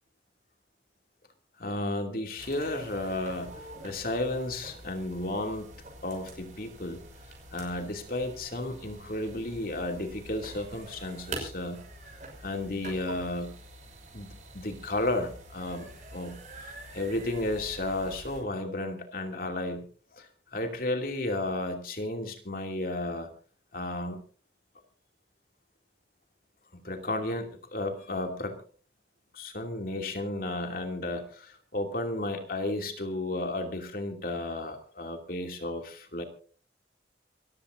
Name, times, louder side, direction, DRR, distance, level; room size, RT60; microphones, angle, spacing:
voice 1, 1.6-3.5 3.8-5.7 6.0-7.0 7.5-11.8 12.4-13.5 14.1-19.8 20.2-23.3 23.7-24.2 26.7-28.6 29.3-36.2, left 1 dB, 50° left, 4 dB, 2.7 m, -33 dB
sound 1, 2.4-18.4, right 2 dB, 45° right, 6.0 m, -46 dB
27.0 x 15.0 x 2.7 m, 0.39 s
head